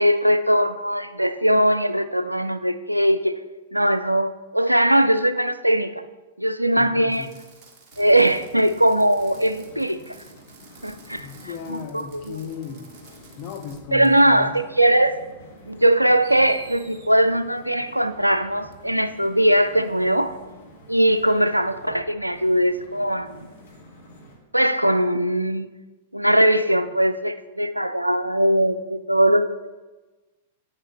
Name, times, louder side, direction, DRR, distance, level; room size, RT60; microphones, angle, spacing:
voice 1, 0.0-3.3 3.7-6.0 6.4-7.3 8.0-10.1 10.8-11.3 11.7-12.4 13.9-14.5 14.8-15.2 15.7-20.3 20.9-23.5 24.5-25.7 26.1-29.5, right 1 dB, 90° right, 11 dB, 0.3 m, -20 dB
voice 2, 6.8-7.3 11.1-12.8 13.4-14.6, left 6 dB, 40° left, 4 dB, 0.9 m, -36 dB
Fireworks, 7.1-13.8 14.0-14.2 15.3-15.4 16.2-17.1 18.7-18.8, right 4 dB, 25° right, 1.7 m, -51 dB
sound 1, 7.9-24.4, left 1 dB, 60° left, 1.6 m, -48 dB
8.4 x 5.4 x 3.5 m, 1.2 s
figure-of-eight pair, 100°, 0 cm